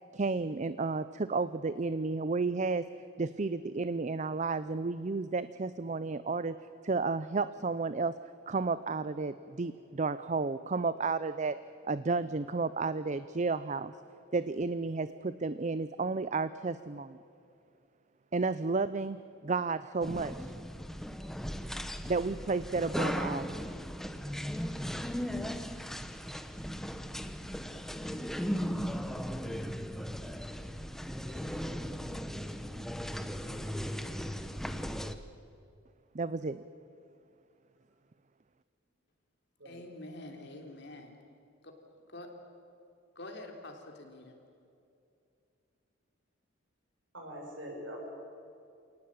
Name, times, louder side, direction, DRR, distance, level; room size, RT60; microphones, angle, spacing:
voice 1, 0.1-2.9 3.2-6.6 6.8-8.2 8.5-13.9 14.3-17.2 18.3-20.5 22.0-23.6 36.1-36.6, right 4 dB, 35° right, 14 dB, 0.5 m, -32 dB
sound 1, 20.0-35.1, equal, ahead, 0.9 m, -37 dB
voice 2, 39.6-41.1 41.6-41.7 42.1-42.3 43.1-44.4, left 1 dB, 60° left, 3 dB, 3.4 m, -46 dB
voice 3, 47.1-48.1, equal, 70° right, 0 dB, 7.4 m, -43 dB
27.5 x 18.5 x 8.8 m, 2.6 s
head